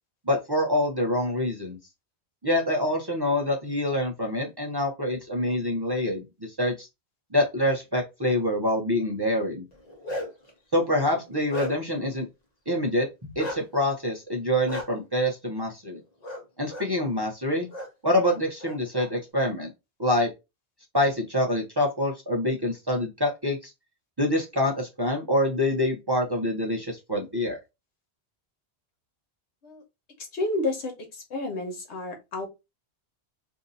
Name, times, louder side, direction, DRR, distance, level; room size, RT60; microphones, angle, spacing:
voice 1, 0.3-1.8 2.4-6.9 7.3-9.6 10.7-12.3 12.7-16.0 16.6-17.7 18.0-19.7 20.0-20.3 20.9-23.7 24.2-27.6, left 1 dB, 30° right, 0.6 m, -26 dB
Bark, 9.7-10.5 11.0-12.0 13.4-13.6 14.7-14.8 16.2-16.4 16.7-16.9 17.7-17.9 18.2-19.1, equal, 40° left, 1.0 m, -35 dB
voice 2, 30.3-32.5, left 2 dB, 85° left, 1.3 m, -30 dB
2.7 x 2.6 x 3.8 m
omnidirectional pair, 1.1 m